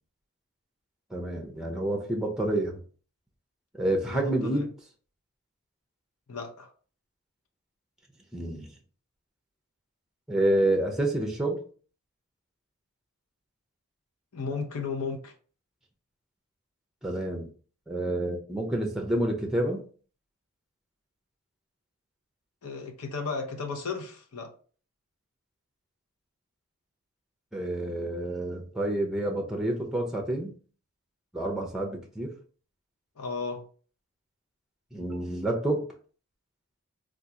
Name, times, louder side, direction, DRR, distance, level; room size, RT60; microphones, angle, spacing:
voice 1, 1.1-2.8 3.8-4.7 8.3-8.7 10.3-11.6 17.0-17.5 17.9-19.8 27.5-30.5 31.3-32.3 34.9-35.8, right 1 dB, ahead, 0.5 m, -28 dB
voice 2, 4.1-4.7 6.3-6.7 14.3-15.3 22.6-24.5 33.2-33.6, left 4 dB, 80° left, 0.7 m, -34 dB
3.5 x 2.4 x 2.8 m
head